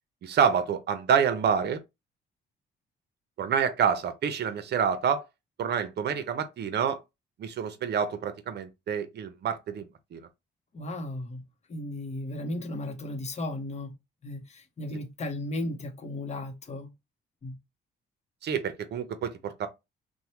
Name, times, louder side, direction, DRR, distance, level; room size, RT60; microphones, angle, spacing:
voice 1, 0.2-1.8 3.4-5.3 5.6-7.0 7.4-9.9 10.1-10.3 18.4-19.7, right 7 dB, 60° right, 0.7 m, -27 dB
voice 2, 10.7-11.4 11.7-14.0 14.2-16.9 17.4-17.6, left 1 dB, 35° left, 0.8 m, -35 dB
3.0 x 2.2 x 2.9 m
cardioid pair, 90°, 20 cm